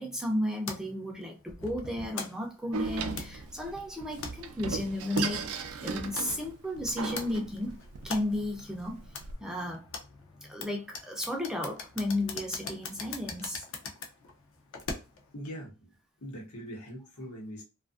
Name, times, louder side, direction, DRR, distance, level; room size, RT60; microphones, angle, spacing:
voice 1, 0.0-7.7 8.0-9.1 9.4-9.9 10.5-13.6, left 1 dB, 5° right, 0.4 m, -33 dB
sound 1, 0.7-15.3, left 4 dB, 60° left, 0.5 m, -43 dB
Door, 2.7-9.3, right 4 dB, 75° right, 0.4 m, -37 dB
voice 2, 15.3-15.9 16.2-17.6, equal, 90° left, 1.0 m, -42 dB
2.6 x 2.4 x 2.4 m
head